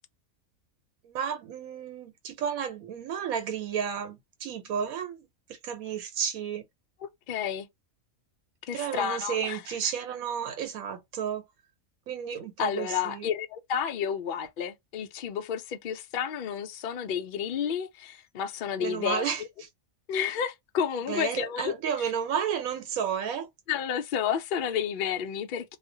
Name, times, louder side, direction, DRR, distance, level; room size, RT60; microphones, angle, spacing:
voice 1, 1.0-6.7 8.7-11.4 12.1-13.3 18.8-19.4 21.1-23.5, right 8 dB, 85° right, 1.1 m, -32 dB
voice 2, 7.3-7.7 8.7-9.9 12.6-19.2 20.1-21.7 23.7-25.8, left 8 dB, 85° left, 0.4 m, -31 dB
2.4 x 2.1 x 2.5 m
omnidirectional pair, 1.5 m